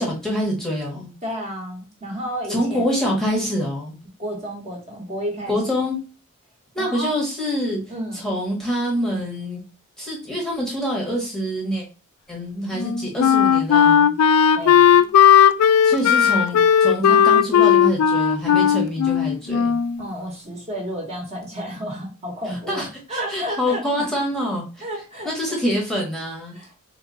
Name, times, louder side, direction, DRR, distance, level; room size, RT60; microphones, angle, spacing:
voice 1, 0.0-1.1 2.5-4.0 5.5-6.0 6.7-7.8 8.1-9.6 10.0-11.8 12.3-14.1 15.8-19.7 22.5-24.8 25.2-26.6, equal, ahead, -2 dB, 1.0 m, -25 dB
voice 2, 1.2-2.8 4.2-5.6 6.8-7.2 7.9-8.2 14.5-15.1 20.0-24.1 24.8-25.6 26.5-26.7, equal, 30° right, 0 dB, 1.1 m, -31 dB
Wind instrument woodwind instrument, 12.8-20.0, left 8 dB, 85° left, 0.3 m, -16 dB
3.6 x 2.9 x 3.7 m, 0.34 s
head